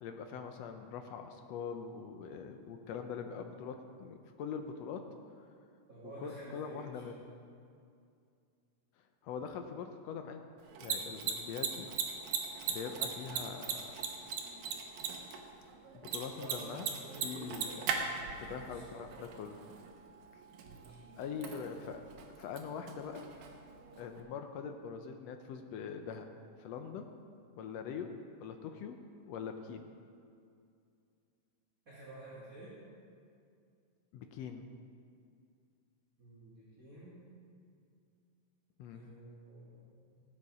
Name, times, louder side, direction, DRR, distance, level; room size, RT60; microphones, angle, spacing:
voice 1, 0.0-5.1 5.4-5.5 6.0-7.2 9.0-10.4 10.8-11.9 12.7-13.9 16.1-16.9 17.2-17.7 18.4-19.6 20.3-20.4 21.2-22.0 22.4-23.3 24.0-26.3 26.6-27.1 27.6-29.0 29.2-29.8 34.1-34.6 38.8-39.1, left 6 dB, 80° left, 6 dB, 1.5 m, -43 dB
voice 2, 5.9-7.2 16.4-19.1 20.6-21.2 31.9-32.8 36.2-37.2 38.9-40.2, right 1 dB, 25° right, -9 dB, 2.5 m, -51 dB
Mechanisms, 10.6-24.2, right 6 dB, 85° right, 2.8 m, -40 dB
17.5 x 8.6 x 4.8 m, 2.4 s
omnidirectional pair, 3.8 m